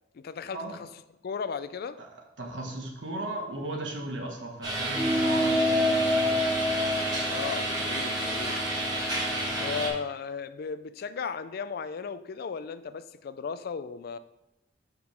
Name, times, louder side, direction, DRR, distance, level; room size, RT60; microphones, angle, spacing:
voice 1, 0.1-0.9 1.2-2.0 7.3-8.6 9.5-14.2, left 6 dB, 55° left, 13 dB, 0.4 m, -36 dB
voice 2, 2.4-6.7, right 1 dB, 85° right, 0 dB, 1.3 m, -37 dB
sound 1, 4.6-9.9, right 1 dB, 25° right, 2.2 m, -30 dB
sound 2, 5.0-9.8, left 1 dB, 5° right, 0.4 m, -29 dB
5.2 x 5.0 x 6.1 m, 0.92 s
head